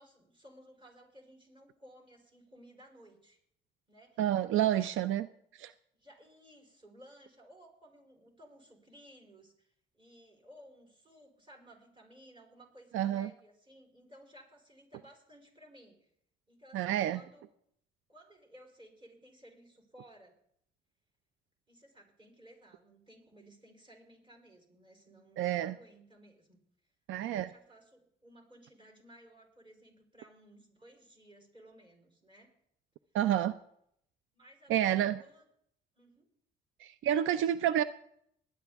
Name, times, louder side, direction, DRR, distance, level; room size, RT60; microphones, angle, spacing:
voice 1, 0.0-3.4 3.9-4.9 6.0-16.1 16.5-17.5 18.1-20.4 21.7-26.6 27.1-32.6 34.3-35.5 35.9-36.3, right 1 dB, 25° right, 2 dB, 4.0 m, -58 dB
voice 2, 4.2-5.3 5.6-5.7 12.9-13.3 16.7-17.2 25.4-25.7 27.1-27.5 33.1-33.6 34.7-35.2 36.8-37.8, right 11 dB, 80° right, 15 dB, 0.4 m, -29 dB
19.5 x 10.0 x 3.5 m, 0.71 s
cardioid pair, 90°, 20 cm